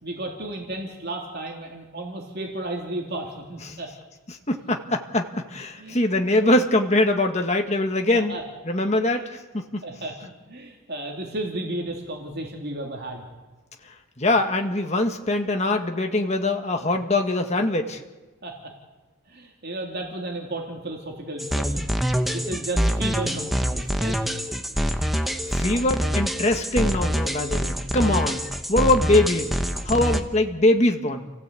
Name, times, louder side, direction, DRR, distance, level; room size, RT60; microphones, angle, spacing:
voice 1, 0.0-3.9 5.8-6.0 6.4-6.5 8.3-8.4 9.1-9.3 9.8-13.3 18.4-18.7 19.3-24.2, right 1 dB, 50° right, 0 dB, 3.4 m, -33 dB
voice 2, 4.3-8.4 8.7-9.8 14.2-18.0 25.5-28.4 28.7-29.5 29.8-31.3, left 1 dB, 30° left, 4 dB, 1.7 m, -22 dB
sound 1, 21.4-30.2, equal, ahead, 1.3 m, -25 dB
29.5 x 16.5 x 8.4 m, 1.2 s
head